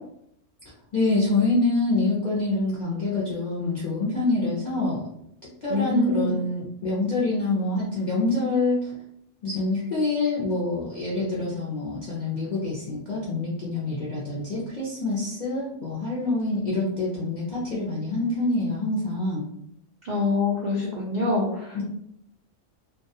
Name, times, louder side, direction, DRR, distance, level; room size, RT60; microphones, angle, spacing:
voice 1, 0.9-5.0 5.6-8.9 9.4-19.4 21.7-21.8, left 2 dB, 55° left, -6 dB, 0.5 m, -26 dB
voice 2, 5.7-6.3 20.0-21.7, left 3 dB, 75° right, -4 dB, 0.4 m, -25 dB
2.2 x 2.2 x 2.7 m, 0.75 s
omnidirectional pair, 1.3 m